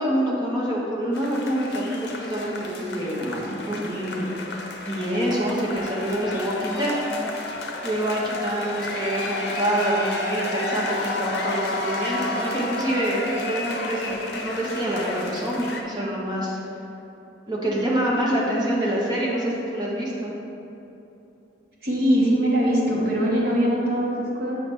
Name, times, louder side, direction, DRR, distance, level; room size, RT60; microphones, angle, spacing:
voice 1, 0.0-4.3 4.8-6.9 7.8-16.6 17.5-20.3, right 1 dB, 20° right, -5 dB, 1.1 m, -26 dB
sound 1, 1.1-15.8, left 2 dB, 60° left, 0.7 m, -31 dB
voice 2, 21.8-24.6, equal, 55° right, -6 dB, 1.4 m, -22 dB
7.1 x 5.8 x 3.2 m, 2.9 s
head